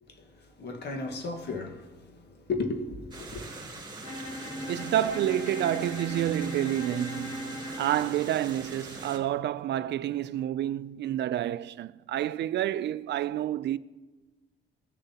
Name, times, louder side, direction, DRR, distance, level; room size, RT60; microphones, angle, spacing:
voice 1, 0.0-3.4, left 3 dB, 60° left, 1.6 m, -35 dB
sound 1, 3.1-9.2, right 3 dB, 20° right, 2.7 m, -42 dB
Bowed string instrument, 4.0-8.2, equal, 30° left, 1.9 m, -38 dB
voice 2, 4.7-13.8, right 12 dB, 60° right, 0.4 m, -29 dB
17.5 x 6.9 x 2.9 m
cardioid pair, 90°, 20 cm